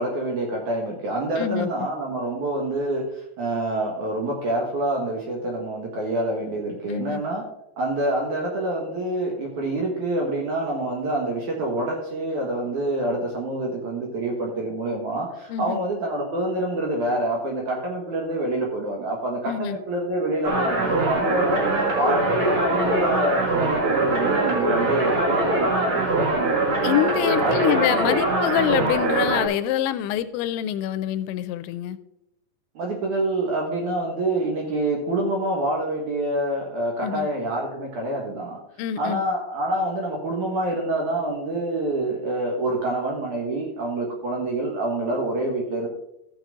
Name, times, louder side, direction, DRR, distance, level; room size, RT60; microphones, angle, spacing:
voice 1, 0.0-7.4 7.8-21.6 22.0-26.8 27.4-27.8 32.8-38.6 39.0-45.9, right 1 dB, 60° right, -1 dB, 2.2 m, -26 dB
voice 2, 1.4-1.7 6.9-7.2 15.5-15.8 19.5-19.8 26.8-32.0 37.0-37.3 38.8-39.2, left 11 dB, 85° left, 14 dB, 2.9 m, -25 dB
sound 1, 20.4-29.4, right 2 dB, 75° right, 1.1 m, -22 dB
15.0 x 7.0 x 3.7 m, 0.84 s
omnidirectional pair, 5.2 m